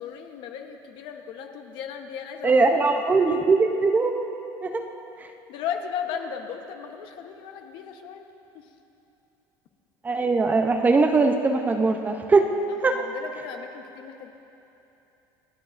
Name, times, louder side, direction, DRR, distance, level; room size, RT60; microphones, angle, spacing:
voice 1, 0.0-2.6 5.5-8.3 8.5-8.7 12.9-14.3, left 8 dB, 60° left, 5 dB, 1.0 m, -36 dB
voice 2, 2.4-4.1 4.6-4.8 10.0-12.5 12.8-13.0, right 3 dB, 20° right, 5 dB, 0.6 m, -20 dB
26.5 x 9.2 x 2.6 m, 2.9 s
cardioid pair, 140°, 9 cm